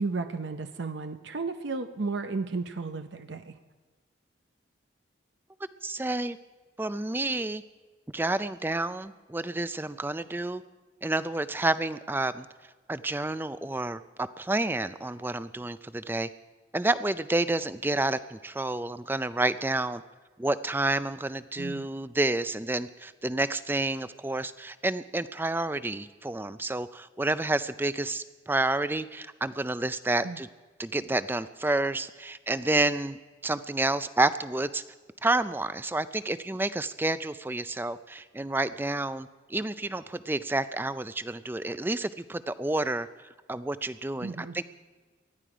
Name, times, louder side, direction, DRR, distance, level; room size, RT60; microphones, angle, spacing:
voice 1, 0.0-3.6 21.6-21.9 30.2-30.4 44.2-44.5, right 3 dB, 70° right, 8 dB, 0.7 m, -33 dB
voice 2, 5.8-6.4 6.8-7.6 8.1-10.6 11.0-12.5 12.9-16.3 16.7-20.0 20.4-30.5 30.8-33.2 33.4-34.8 35.2-43.1 43.5-44.6, right 2 dB, 10° right, 14 dB, 0.4 m, -29 dB
19.5 x 12.5 x 5.0 m, 1.3 s
head